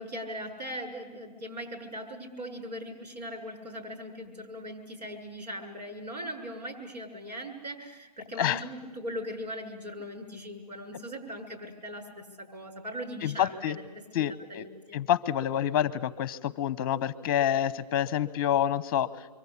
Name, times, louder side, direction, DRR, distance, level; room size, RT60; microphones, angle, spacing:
voice 1, 0.0-13.8 14.1-14.7, equal, 80° right, 3 dB, 7.3 m, -40 dB
voice 2, 13.2-13.8 14.1-14.6 14.9-19.1, left 10 dB, 35° left, 19 dB, 1.0 m, -27 dB
27.0 x 24.0 x 8.5 m, 1.2 s
hypercardioid pair, 155°, 21 cm